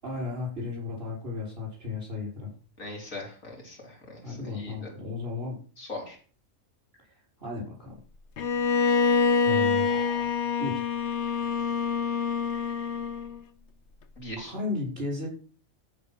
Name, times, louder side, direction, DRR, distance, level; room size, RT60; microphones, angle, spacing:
voice 1, 0.0-2.5 4.2-5.6 7.4-8.0 9.4-10.3 10.6-10.9 14.4-15.3, left 3 dB, 45° right, -3 dB, 6.4 m, -34 dB
voice 2, 2.8-4.9 5.8-6.2 14.2-14.5, left 2 dB, 85° left, 0 dB, 3.9 m, -40 dB
Bowed string instrument, 8.4-13.4, left 5 dB, 60° left, 1.2 m, -26 dB
14.0 x 5.1 x 6.3 m, 0.39 s
omnidirectional pair, 1.4 m